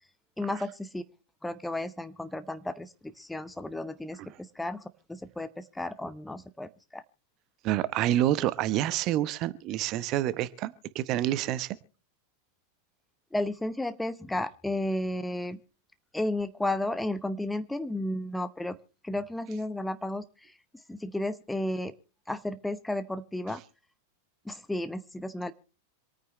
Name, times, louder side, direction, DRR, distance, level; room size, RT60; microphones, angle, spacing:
voice 1, 0.4-1.0 1.4-4.8 5.1-7.0 13.3-15.6 16.1-18.8 19.0-20.5 20.9-21.9 22.3-23.6 24.4-25.5, left 1 dB, 5° left, 13 dB, 0.7 m, -33 dB
voice 2, 7.6-11.8, right 13 dB, 40° right, 17 dB, 0.9 m, -28 dB
26.5 x 9.4 x 3.1 m, 0.35 s
figure-of-eight pair, 90°, 0 cm